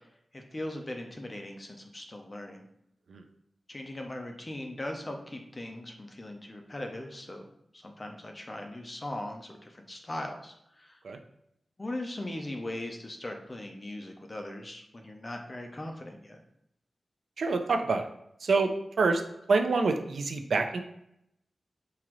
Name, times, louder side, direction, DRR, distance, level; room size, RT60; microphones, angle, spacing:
voice 1, 0.3-2.7 3.7-7.5 7.8-10.9 11.8-16.4, left 1 dB, 25° left, 3 dB, 0.6 m, -39 dB
voice 2, 17.4-18.1 18.4-18.7 19.0-19.2 19.5-20.8, right 4 dB, 85° right, 6 dB, 0.4 m, -26 dB
3.7 x 2.9 x 3.0 m, 0.77 s
wide cardioid pair, 135°, 0 cm